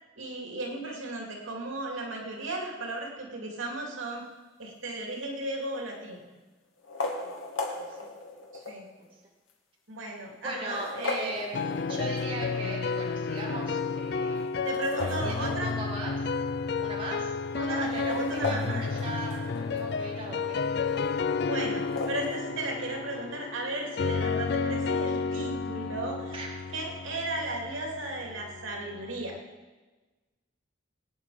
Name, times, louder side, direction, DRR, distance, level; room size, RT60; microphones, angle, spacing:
voice 1, 0.2-4.2 4.6-6.2 8.5-8.8 9.9-11.4 14.6-15.7 17.6-18.8 21.5-26.4 26.7-29.4, right 2 dB, 85° right, 0 dB, 2.7 m, -35 dB
sound 1, 5.1-5.6 6.8-8.9 9.5-9.6 10.5-12.5 14.6-16.0 16.3-16.4 16.7-16.8 17.6-19.9 21.7-22.4, left 3 dB, 85° left, 2.0 m, -36 dB
voice 2, 7.7-8.1 9.0-9.1 10.4-16.2 16.8-21.1 26.3-26.5, right 1 dB, 25° right, -3 dB, 2.3 m, -38 dB
sound 2, 11.5-29.4, left 4 dB, 55° left, 0.4 m, -32 dB
20.5 x 9.2 x 5.0 m, 1.2 s
head